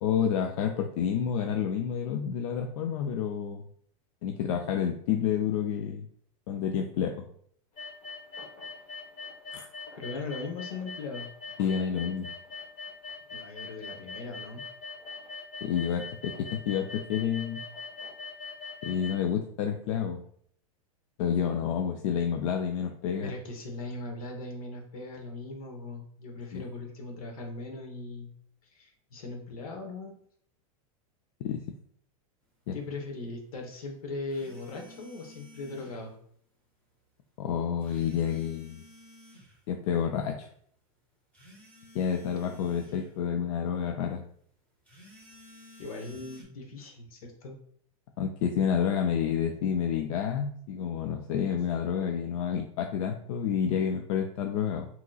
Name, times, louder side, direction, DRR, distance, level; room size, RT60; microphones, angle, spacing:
voice 1, 0.0-3.6 4.2-6.1 6.5-7.3 9.5-9.7 11.6-12.3 15.6-17.6 18.8-20.2 21.2-23.3 26.5-26.6 31.4-31.6 32.7-32.8 37.4-38.8 39.7-40.5 41.9-44.2 48.2-54.9, left 8 dB, 60° left, 4 dB, 0.4 m, -29 dB
sound 1, 7.8-19.2, left 4 dB, 40° left, 1.2 m, -42 dB
voice 2, 10.0-11.3 13.3-14.6 23.2-28.3 28.7-30.1 32.7-36.1 45.8-47.5, left 3 dB, 75° left, 2 dB, 1.0 m, -39 dB
sound 2, 34.3-36.0 37.8-39.5 41.3-43.1 44.9-46.4, left 1 dB, 10° left, 1.4 m, -53 dB
3.7 x 2.9 x 2.3 m, 0.62 s
supercardioid pair, 130°, 18 cm